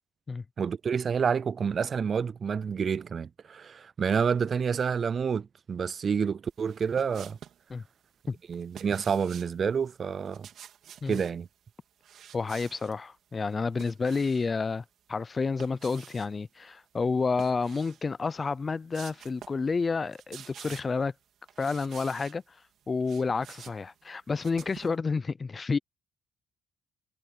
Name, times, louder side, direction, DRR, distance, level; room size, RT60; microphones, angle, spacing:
voice 1, 0.6-7.4 8.5-10.5 11.1-11.5, right 6 dB, 45° right, 0.3 m, -28 dB
sound 1, 6.6-7.6 8.5-9.6 10.2-11.4 12.0-12.9 13.4-14.5 15.4-16.3 17.3-18.0 18.4-18.5 18.9-19.7 20.0-21.0 21.5-22.4 22.8-25.0, right 9 dB, 70° right, 3.8 m, -49 dB
voice 2, 12.3-21.1 21.6-22.4 22.9-25.8, left 4 dB, 35° left, 0.5 m, -30 dB
cardioid pair, 90°, 0 cm